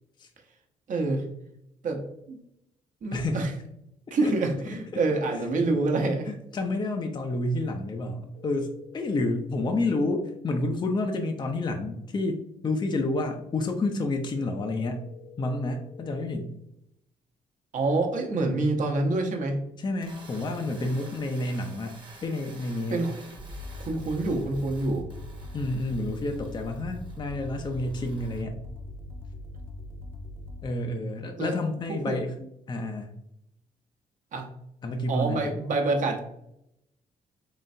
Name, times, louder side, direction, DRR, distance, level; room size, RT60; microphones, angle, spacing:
voice 1, 0.9-1.3 1.8-2.4 3.0-3.5 4.1-6.3 17.7-19.6 22.9-23.1 23.8-25.1 31.4-31.6 31.9-32.1 34.3-34.5 35.1-36.2, right 2 dB, 60° right, 3 dB, 0.9 m, -27 dB
voice 2, 3.1-3.5 4.2-4.3 6.3-15.0 15.4-16.5 19.8-23.1 25.5-28.6 30.6-32.3 32.7-33.1 34.8-35.5, left 2 dB, 30° left, 4 dB, 0.5 m, -29 dB
sound 1, 8.3-10.3 14.3-16.3, left 8 dB, 85° left, 1.4 m, -49 dB
sound 2, 19.9-28.4, right 2 dB, 30° right, 1.0 m, -51 dB
sound 3, 23.4-30.7, left 2 dB, 15° right, 0.7 m, -41 dB
3.8 x 3.2 x 2.6 m, 0.79 s
cardioid pair, 75°, 15 cm